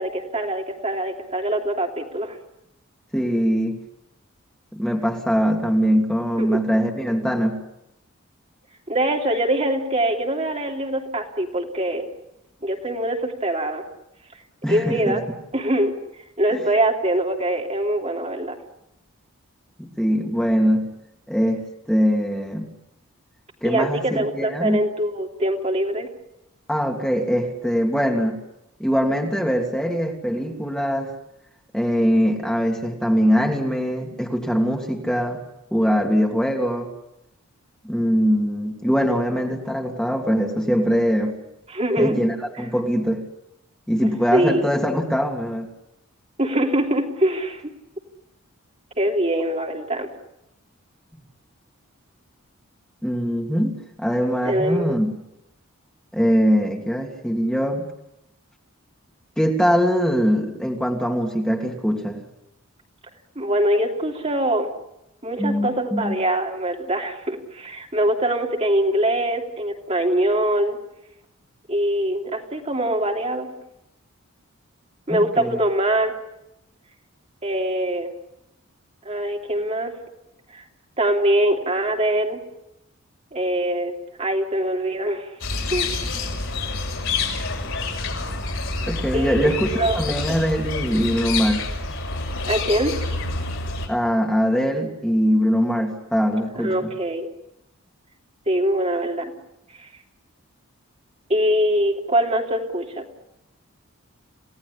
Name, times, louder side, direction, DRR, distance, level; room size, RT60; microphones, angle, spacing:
voice 1, 0.0-2.4 6.4-6.6 8.9-12.1 12.6-13.8 14.7-15.2 15.5-15.9 16.4-18.6 23.6-26.1 41.7-42.2 44.0-44.7 46.4-47.7 49.0-50.1 54.4-55.0 63.3-64.7 65.2-70.8 71.7-73.5 75.1-76.1 77.4-78.1 79.0-79.9 80.5-80.6 81.0-82.4 83.3-83.9 84.2-85.3 85.7-86.1 89.1-89.4 89.7-90.0 92.5-92.9 96.5-97.3 98.5-99.3 99.7-99.9 101.3-103.1, right 1 dB, 30° right, 1 dB, 3.0 m, -23 dB
voice 2, 3.1-3.8 4.7-7.6 14.6-15.2 16.5-16.6 19.8-20.9 21.3-22.7 23.6-24.0 24.3-24.8 26.7-28.4 28.8-31.1 31.7-35.4 35.7-36.9 37.8-41.4 42.0-43.2 43.9-45.7 53.0-55.1 56.1-57.9 59.4-62.2 65.4-66.1 75.1-75.6 88.9-89.7 89.9-91.7 93.9-96.9, equal, 5° left, 1 dB, 2.8 m, -22 dB
sound 1, 85.4-93.9, left 3 dB, 60° left, 6.0 m, -27 dB
29.0 x 18.0 x 9.9 m, 0.88 s
head